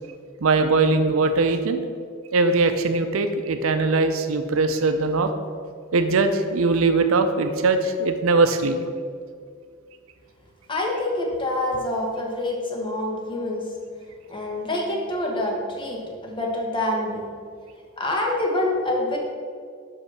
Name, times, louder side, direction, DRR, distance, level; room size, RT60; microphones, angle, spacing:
voice 1, 0.4-1.8 2.3-5.3 5.9-8.8, right 3 dB, 75° right, 8 dB, 0.5 m, -21 dB
voice 2, 10.7-13.7 14.3-17.2 18.0-19.2, left 1 dB, 25° left, -1 dB, 1.3 m, -26 dB
5.8 x 5.2 x 6.0 m, 2.1 s
head